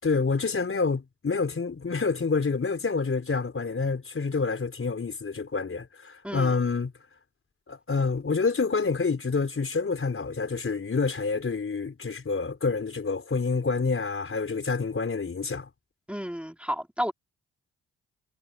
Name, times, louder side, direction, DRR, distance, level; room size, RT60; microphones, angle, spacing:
voice 1, 0.0-6.9 7.7-15.7, left 4 dB, 40° left, 4.6 m, -28 dB
voice 2, 6.2-6.5 16.1-17.1, equal, 5° right, 3.7 m, -32 dB
hypercardioid pair, 45°, 32 cm